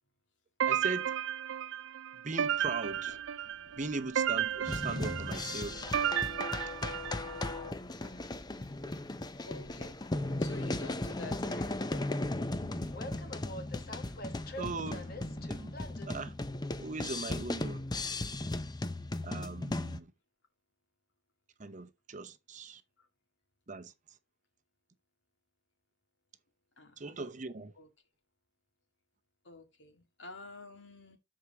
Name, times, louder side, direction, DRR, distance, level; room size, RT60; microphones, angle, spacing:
sound 1, 0.6-7.5, right 9 dB, 80° right, 0.4 m, -33 dB
voice 1, 0.7-1.1 2.2-3.2 3.8-5.8 14.6-15.1 15.5-15.7 16.1-16.3 16.8-17.8 19.2-20.1 21.6-22.8 23.7-23.9 27.0-27.7, right 3 dB, 40° right, 0.8 m, -39 dB
Train, 2.3-16.1, left 1 dB, 50° left, 1.3 m, -51 dB
sound 2, 4.7-20.0, left 2 dB, 20° left, 0.6 m, -37 dB
voice 2, 8.0-8.5 9.5-10.0 10.4-12.4 23.0-23.1 26.8-27.2 27.7-27.9 29.4-31.2, left 3 dB, 75° left, 2.1 m, -49 dB
13.0 x 4.8 x 2.9 m
head